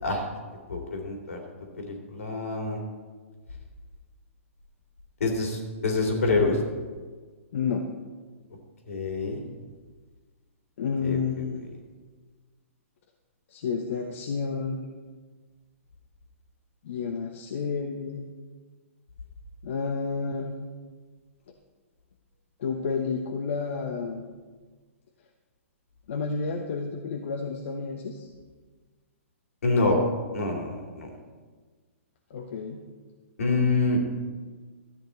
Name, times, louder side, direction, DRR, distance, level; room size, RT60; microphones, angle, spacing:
voice 1, 0.7-1.4 1.8-2.8 5.2-6.6 8.9-9.4 11.0-11.2 29.6-30.0 30.3-31.1 33.4-34.0, left 3 dB, 75° left, 1 dB, 2.9 m, -26 dB
voice 2, 7.5-7.9 10.8-11.7 13.5-14.8 16.8-18.3 19.6-20.5 22.6-24.2 26.1-28.3 32.3-32.8, left 5 dB, 60° left, 3 dB, 1.1 m, -30 dB
13.0 x 8.5 x 4.1 m, 1.4 s
hypercardioid pair, 130°, 8 cm